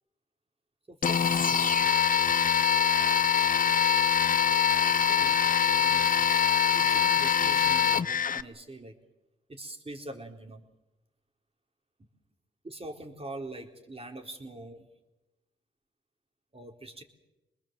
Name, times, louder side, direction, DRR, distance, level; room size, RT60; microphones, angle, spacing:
voice 1, 0.9-1.7 5.0-5.4 5.8-8.9 9.5-10.6 12.6-14.8 16.5-17.0, right 2 dB, 30° right, 3 dB, 4.2 m, -43 dB
sound 1, 1.0-8.4, left 8 dB, 45° left, 0.7 m, -24 dB
25.5 x 20.5 x 7.6 m, 1.0 s
cardioid pair, 55°, 19 cm